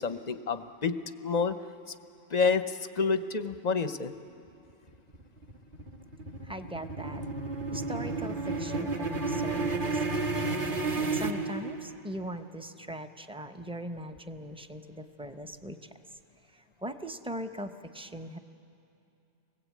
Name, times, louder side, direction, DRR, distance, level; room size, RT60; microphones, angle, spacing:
voice 1, 0.0-1.6 2.3-4.1, left 5 dB, 40° left, 10 dB, 0.6 m, -29 dB
sound 1, 4.9-12.1, right 3 dB, 40° right, 1.3 m, -32 dB
voice 2, 6.4-7.2 7.7-10.2 11.0-15.9 16.5-18.4, equal, 5° right, 6 dB, 0.5 m, -40 dB
29.0 x 21.0 x 8.4 m, 2.8 s
omnidirectional pair, 1.5 m